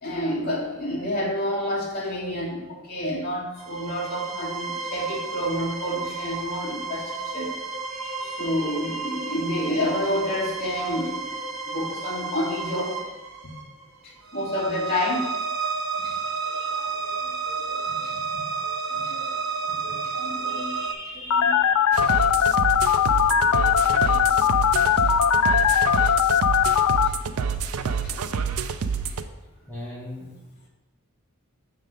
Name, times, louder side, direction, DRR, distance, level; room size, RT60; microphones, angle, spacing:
voice 1, 0.0-7.5 7.9-11.3 11.7-13.0 14.0-15.2 16.0-16.1 16.4-19.3 19.6-22.1 22.4-25.0 26.0-26.1 27.0-27.2 28.0-28.1 29.0-29.1, equal, 45° left, -4 dB, 1.9 m, -30 dB
sound 1, 3.6-20.9, right 4 dB, 60° right, 1.3 m, -31 dB
voice 2, 15.8-16.3 29.7-30.4, left 1 dB, 10° left, -7 dB, 1.0 m, -39 dB
Telephone, 21.3-27.1, left 8 dB, 75° left, 0.3 m, -20 dB
sound 2, 21.9-29.3, right 6 dB, 80° right, 0.5 m, -28 dB
7.2 x 3.8 x 6.0 m, 1.0 s
head